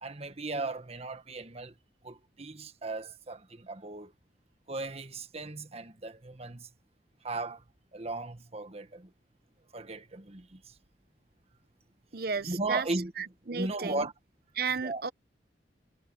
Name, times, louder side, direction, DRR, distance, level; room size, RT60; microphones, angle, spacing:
voice 1, 0.0-1.7 2.0-4.1 4.7-6.7 7.2-7.6 7.9-9.1 9.7-10.7 12.4-13.1 13.4-14.1 14.8-15.0, right 2 dB, 35° right, 1.4 m, -36 dB
voice 2, 12.1-12.8 13.2-14.1 14.6-15.1, right 5 dB, 60° right, 1.0 m, -33 dB
head